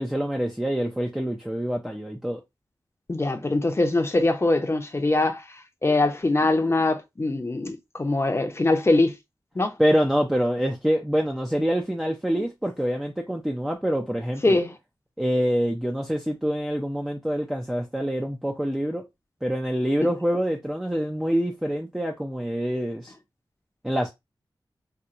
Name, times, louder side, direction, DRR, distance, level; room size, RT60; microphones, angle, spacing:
voice 1, 0.0-2.4 9.8-14.6 15.2-19.0 19.4-23.1 23.8-24.1, equal, 5° right, 0.5 m, -26 dB
voice 2, 3.1-5.5 5.8-9.2 9.5-9.7 12.4-12.5 14.4-14.7 20.0-20.1, left 2 dB, 30° left, 0.7 m, -22 dB
4.3 x 2.2 x 2.5 m
wide cardioid pair, 70°, 8 cm